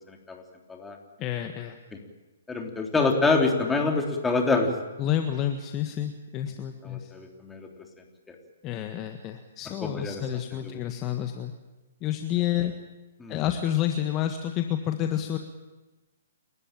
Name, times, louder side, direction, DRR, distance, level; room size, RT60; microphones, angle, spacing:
voice 1, 0.1-0.4 0.7-1.0 2.5-4.7 6.8-7.7 8.3-8.4 9.8-10.2 10.6-10.7 13.2-13.4, left 3 dB, 10° left, 2 dB, 3.4 m, -26 dB
voice 2, 1.2-1.8 5.0-7.1 8.6-11.5 12.0-12.7 13.3-15.4, left 11 dB, 30° left, 6 dB, 1.6 m, -29 dB
29.5 x 13.5 x 9.1 m, 1.2 s
hypercardioid pair, 125°, 0 cm